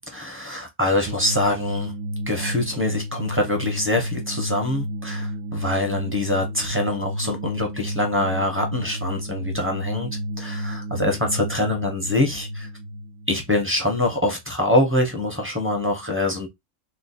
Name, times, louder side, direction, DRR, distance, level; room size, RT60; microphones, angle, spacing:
voice 1, 0.0-1.9 2.3-10.1 10.4-12.7 13.3-16.5, left 1 dB, 15° right, 0.6 m, -24 dB
sound 1, 1.1-14.2, equal, 80° right, 1.0 m, -31 dB
3.2 x 2.0 x 4.0 m
omnidirectional pair, 1.4 m